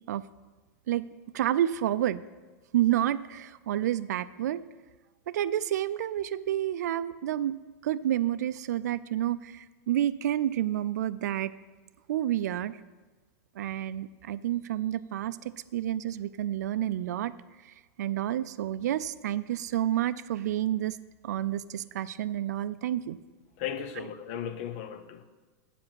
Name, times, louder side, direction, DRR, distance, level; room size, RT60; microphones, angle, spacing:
voice 1, 0.9-2.2 2.7-4.6 5.3-7.6 7.8-11.5 12.1-12.8 13.6-17.3 18.0-21.0 21.2-23.2 24.0-24.1, right 12 dB, 90° right, 0.4 m, -29 dB
voice 2, 23.6-25.2, left 9 dB, 45° left, 0.7 m, -36 dB
8.5 x 5.1 x 7.5 m
supercardioid pair, 155°, 9 cm